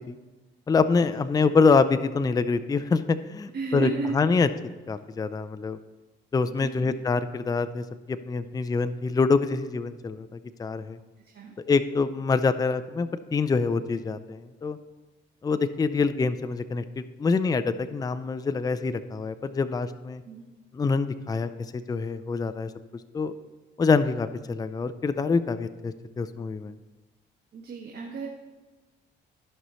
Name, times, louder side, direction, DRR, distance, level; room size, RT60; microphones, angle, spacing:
voice 1, 0.7-4.5 4.9-5.8 6.3-11.0 11.7-14.8 15.4-20.2 20.7-22.7 23.1-23.3 23.8-26.7, left 4 dB, 20° left, 11 dB, 0.4 m, -25 dB
voice 2, 3.5-4.5 6.5-7.0 11.2-11.5 20.2-20.5 27.5-28.3, right 4 dB, 55° right, 0 dB, 1.2 m, -34 dB
14.0 x 5.5 x 3.0 m, 1.3 s
cardioid pair, 90°, 20 cm